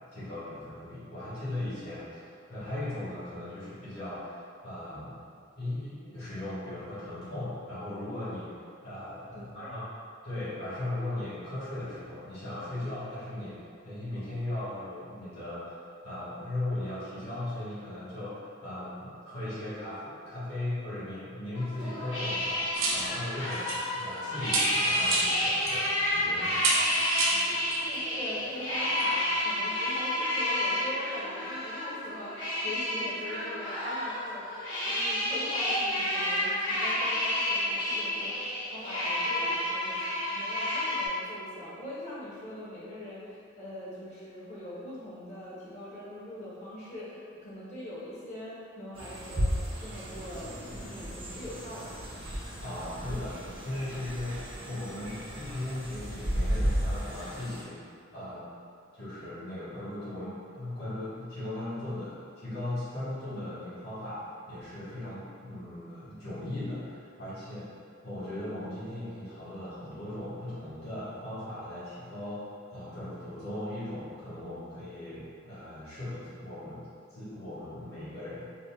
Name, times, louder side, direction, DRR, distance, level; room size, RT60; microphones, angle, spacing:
voice 1, 0.1-5.1 5.5-8.5 8.8-9.8 10.2-15.8 16.0-26.6 52.6-57.8 58.1-58.4 58.9-67.7 68.0-78.5, left 1 dB, 55° left, -14 dB, 1.4 m, -38 dB
voice 2, 9.3-9.7 27.3-27.5 27.8-52.0, left 1 dB, 35° left, -8 dB, 0.7 m, -42 dB
sound 1, 21.5-41.1, left 1 dB, 75° left, 1.1 m, -30 dB
sound 2, 22.7-24.2 24.4-25.9 26.5-27.9 29.0-29.1, right 3 dB, 90° right, 0.5 m, -30 dB
sound 3, 49.0-57.6, equal, 30° right, 0.6 m, -34 dB
4.0 x 2.1 x 2.3 m, 2.4 s
head